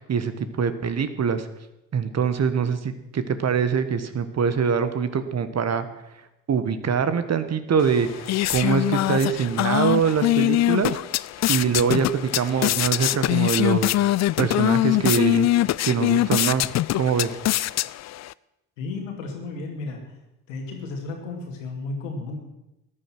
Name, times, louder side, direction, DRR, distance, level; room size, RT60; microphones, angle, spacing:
voice 1, 0.0-1.5 1.9-5.9 6.5-11.0 11.5-14.0 14.4-15.5 15.8-17.4, right 6 dB, 45° right, 11 dB, 1.5 m, -24 dB
sound 1, 7.8-18.3, left 15 dB, 45° left, 0.4 m, -23 dB
voice 2, 18.8-20.0 20.5-22.4, left 3 dB, 85° left, 3 dB, 2.4 m, -33 dB
14.0 x 10.0 x 6.1 m, 0.92 s
hypercardioid pair, 55°, 37 cm